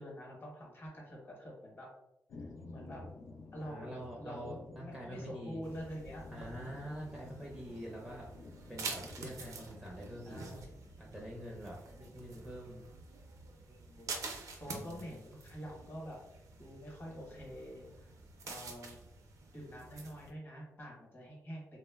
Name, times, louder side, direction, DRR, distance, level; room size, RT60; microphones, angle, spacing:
voice 1, 0.0-1.9 2.4-3.1 3.5-6.2 6.6-7.2 8.7-8.8 10.3-10.8 11.9-12.0 13.7-14.1 14.6-16.2 16.6-18.1 18.4-19.0 19.5-21.7, equal, 40° left, -3 dB, 0.9 m, -47 dB
sound 1, 2.3-12.5, left 3 dB, 65° left, 0.4 m, -53 dB
voice 2, 3.7-5.6 6.3-8.3 8.7-10.4 11.0-12.8 14.6-15.1, equal, 10° right, -2 dB, 0.4 m, -46 dB
sound 2, 5.6-20.3, right 4 dB, 75° right, 0.4 m, -48 dB
3.0 x 2.0 x 2.2 m, 0.87 s
wide cardioid pair, 120°, 6 cm